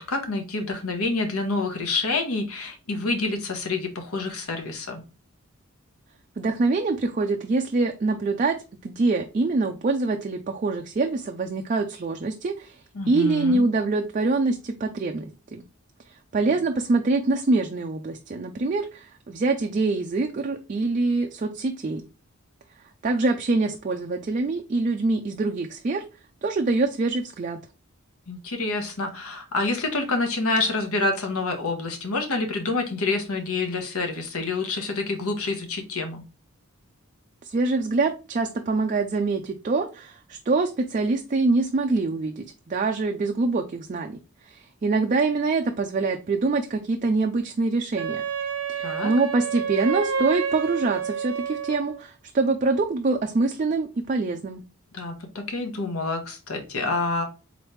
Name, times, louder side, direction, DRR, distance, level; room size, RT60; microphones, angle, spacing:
voice 1, 0.1-5.0 12.9-13.6 28.3-36.2 48.8-49.1 54.9-57.2, left 3 dB, 75° left, 4 dB, 1.1 m, -27 dB
voice 2, 6.4-12.8 13.1-15.6 16.3-22.0 23.0-26.0 26.4-27.6 37.4-48.2 48.7-54.6, right 3 dB, 35° right, 4 dB, 0.3 m, -25 dB
Wind instrument woodwind instrument, 48.0-52.1, right 6 dB, 75° right, 0.6 m, -29 dB
3.9 x 3.1 x 3.2 m, 0.32 s
head